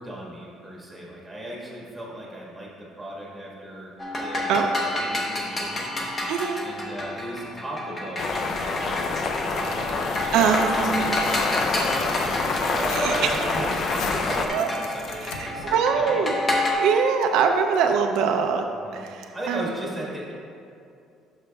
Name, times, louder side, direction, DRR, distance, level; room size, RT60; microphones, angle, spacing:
voice 1, 0.0-2.7 3.0-3.9 4.2-6.3 6.6-10.0 10.8-16.4 18.8-20.3, right 1 dB, 5° right, -5 dB, 1.4 m, -35 dB
sound 1, 4.0-16.7, left 1 dB, 20° left, 0.8 m, -30 dB
voice 2, 6.3-6.7 10.3-11.3 13.0-13.1 14.5-14.7 15.6-16.4 16.7-18.7 18.9-19.6, right 6 dB, 70° right, 4 dB, 0.4 m, -23 dB
sound 2, 8.2-14.5, left 4 dB, 40° left, 0.4 m, -27 dB
Tearing, 9.6-15.7, left 5 dB, 80° left, 0.6 m, -40 dB
11.0 x 5.6 x 2.3 m, 2.5 s
cardioid pair, 160°, 0 cm